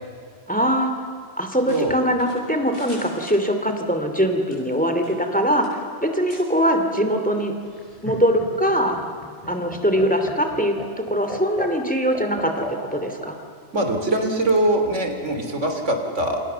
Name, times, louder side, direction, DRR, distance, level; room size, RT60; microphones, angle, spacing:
voice 1, 0.5-0.9 1.4-7.5 8.0-9.0 9.5-10.7 11.1-12.6 12.9-13.4, equal, 5° left, 5 dB, 2.7 m, -22 dB
sound 1, 1.6-3.9 4.4-5.4 5.6-5.8 6.3-6.5, equal, 50° left, 7.5 m, -43 dB
Laughter, 7.6-13.3 14.6-15.3, equal, 30° left, 4.1 m, -36 dB
voice 2, 13.7-16.4, right 1 dB, 85° right, 5 dB, 3.4 m, -22 dB
29.0 x 27.0 x 6.9 m, 2.3 s
omnidirectional pair, 1.2 m